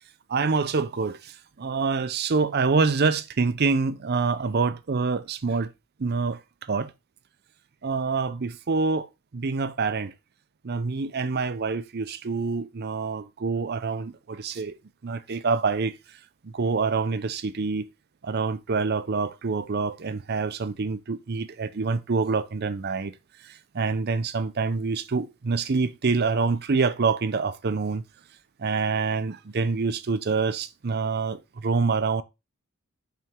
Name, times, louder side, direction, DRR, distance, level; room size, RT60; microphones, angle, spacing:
voice 1, 0.3-5.7 6.0-6.9 7.8-9.1 9.3-10.1 10.6-14.8 15.0-16.2 16.4-17.9 18.2-23.1 23.4-28.0 28.6-32.2, right 4 dB, 45° right, 0.5 m, -26 dB
5.7 x 4.8 x 3.6 m
head